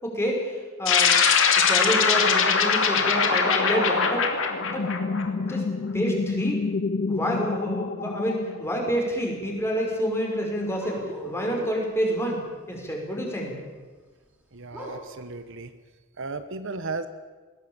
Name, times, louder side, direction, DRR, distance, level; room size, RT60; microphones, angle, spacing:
voice 1, 0.0-1.2 1.5-4.3 4.7-4.9 5.4-5.7 5.9-6.7 7.1-12.4 12.7-13.5, equal, 10° left, 0 dB, 5.6 m, -28 dB
sound 1, 0.8-5.5, left 6 dB, 65° left, 2.7 m, -21 dB
sound 2, 4.5-9.0, left 4 dB, 40° left, 0.6 m, -29 dB
sound 3, 10.7-11.9 14.7-15.2, equal, 5° right, 6.1 m, -39 dB
voice 2, 14.5-15.7 16.2-17.1, right 3 dB, 65° right, 11 dB, 1.2 m, -35 dB
20.5 x 17.5 x 8.9 m, 1.3 s
head